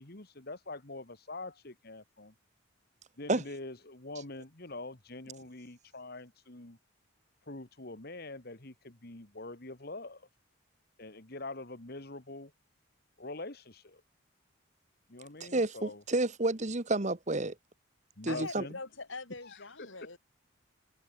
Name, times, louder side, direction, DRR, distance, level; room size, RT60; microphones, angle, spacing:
voice 1, 0.0-2.3 3.2-6.8 7.5-10.2 11.0-12.5 13.2-14.0 15.1-16.0 18.2-18.8 19.4-19.9, left 2 dB, 50° left, 2.0 m, -44 dB
voice 2, 15.4-17.5 18.2-18.7, right 2 dB, 35° right, 1.2 m, -30 dB
voice 3, 18.3-20.2, left 3 dB, 75° left, 4.8 m, -43 dB
head